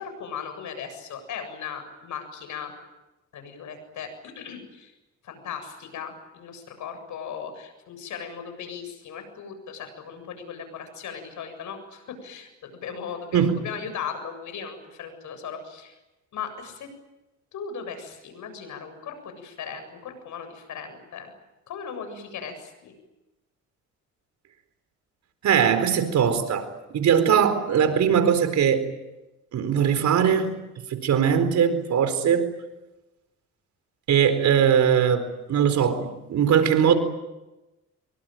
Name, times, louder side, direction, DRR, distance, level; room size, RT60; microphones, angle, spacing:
voice 1, 0.0-2.7 3.3-4.1 4.4-4.9 5.2-15.9 16.3-16.9 17.5-21.3 21.7-22.9, left 7 dB, 75° left, 8 dB, 7.6 m, -37 dB
voice 2, 25.4-28.8 29.5-30.5 30.9-32.5 34.1-37.0, right 8 dB, 70° right, 9 dB, 4.4 m, -21 dB
25.5 x 24.0 x 9.2 m, 1.0 s
cardioid pair, 90°, 30 cm